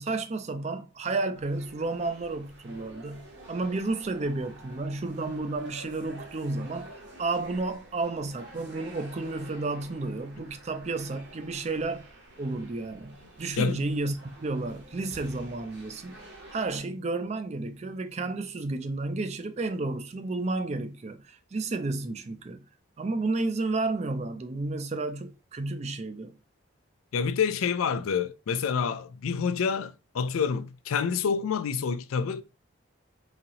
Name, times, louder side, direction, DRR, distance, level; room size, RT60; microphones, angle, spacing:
voice 1, 0.0-6.9 7.2-12.1 12.4-16.2 16.5-22.6 23.0-26.3, right 3 dB, 35° right, 0.4 m, -32 dB
sound 1, 1.3-16.8, right 1 dB, 55° right, 0.9 m, -49 dB
voice 2, 27.1-32.4, left 6 dB, 90° left, 0.4 m, -28 dB
4.0 x 2.8 x 2.7 m
head